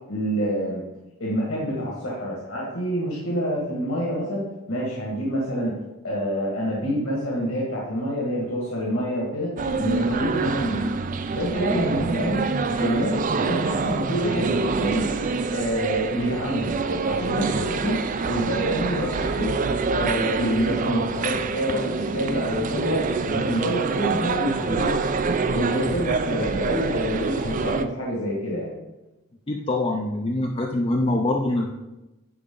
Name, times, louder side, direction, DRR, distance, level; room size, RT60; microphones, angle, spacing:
voice 1, 0.1-0.8 1.2-4.4 4.7-10.8 11.3-12.5 12.8-15.1 15.5-16.7 17.0-18.0 18.3-19.5 19.9-25.0 25.5-28.7, equal, 70° left, -4 dB, 1.7 m, -27 dB
sound 1, 9.6-27.9, right 4 dB, 35° right, 0.4 m, -26 dB
voice 2, 29.5-31.7, left 2 dB, 25° left, 2 dB, 0.4 m, -24 dB
10.0 x 4.5 x 3.8 m, 1.0 s
head